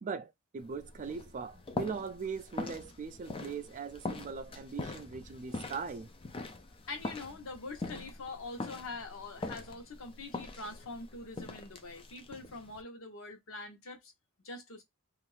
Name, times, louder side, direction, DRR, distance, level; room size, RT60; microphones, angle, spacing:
voice 1, 0.0-6.1, right 5 dB, 40° right, 0.4 m, -40 dB
sound 1, 0.6-12.8, left 3 dB, 25° left, 0.4 m, -43 dB
voice 2, 6.9-14.1 14.4-14.8, left 3 dB, 85° left, 0.9 m, -44 dB
2.6 x 2.5 x 3.2 m
head